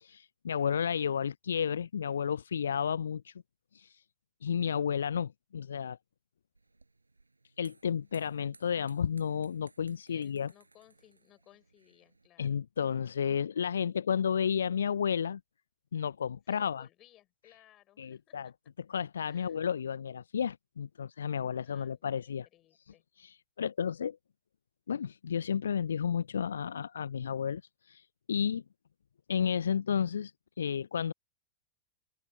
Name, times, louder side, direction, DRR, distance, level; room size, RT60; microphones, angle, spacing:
voice 1, 0.0-3.3 3.7-4.0 4.4-6.0 7.6-10.5 12.4-15.4 15.9-16.9 18.0-18.5 18.9-22.5 23.2-24.2 24.9-28.6 29.3-30.3 30.6-31.1, left 7 dB, 70° left, 0.3 m, -32 dB
sound 1, 6.5-12.3, right 3 dB, 80° right, 5.2 m, -63 dB
voice 2, 10.1-12.6 16.5-18.5 19.3-19.6 21.6-23.0, left 14 dB, 35° left, 5.2 m, -62 dB
open air
figure-of-eight pair, 90°, 0 cm